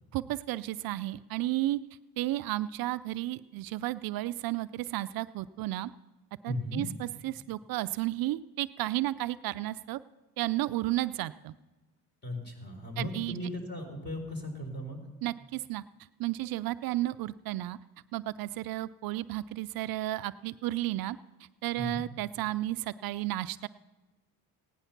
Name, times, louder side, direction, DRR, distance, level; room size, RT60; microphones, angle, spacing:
voice 1, 0.1-1.8 2.2-5.9 6.4-10.0 10.4-11.5 13.0-13.4 15.2-15.8 16.2-17.8 18.1-21.2 21.6-23.7, right 16 dB, 65° right, 14 dB, 0.5 m, -33 dB
voice 2, 6.5-6.8 12.2-15.0 21.8-22.0, left 1 dB, 25° left, 3 dB, 4.2 m, -36 dB
16.5 x 9.9 x 5.8 m, 1.2 s
supercardioid pair, 75°, 38 cm